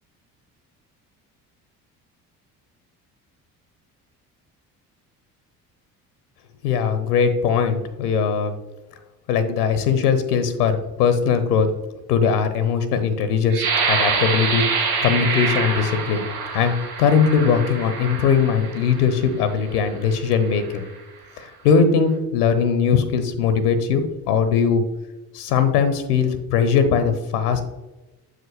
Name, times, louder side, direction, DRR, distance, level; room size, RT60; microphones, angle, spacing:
voice 1, 6.6-8.6 9.3-11.7 12.1-14.6 15.0-16.3 16.5-20.9 21.4-24.8 25.3-27.6, left 6 dB, 70° left, 10 dB, 0.7 m, -20 dB
sound 1, 13.5-19.2 19.8-20.0 20.4-20.9, right 5 dB, 75° right, 1.1 m, -25 dB
7.5 x 4.9 x 3.1 m, 1.1 s
figure-of-eight pair, 50°, 47 cm